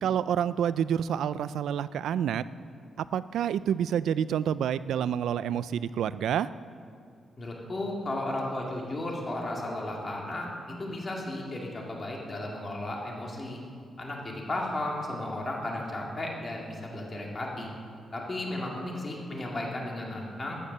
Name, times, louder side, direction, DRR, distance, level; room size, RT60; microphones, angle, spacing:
voice 1, 0.0-2.4 3.1-6.5, right 9 dB, 85° right, 16 dB, 0.4 m, -28 dB
voice 2, 7.4-10.5 10.8-13.6 14.0-17.7 18.1-20.6, left 1 dB, 25° left, -2 dB, 2.2 m, -34 dB
13.5 x 10.0 x 6.8 m, 2.3 s
wide cardioid pair, 170°, 0 cm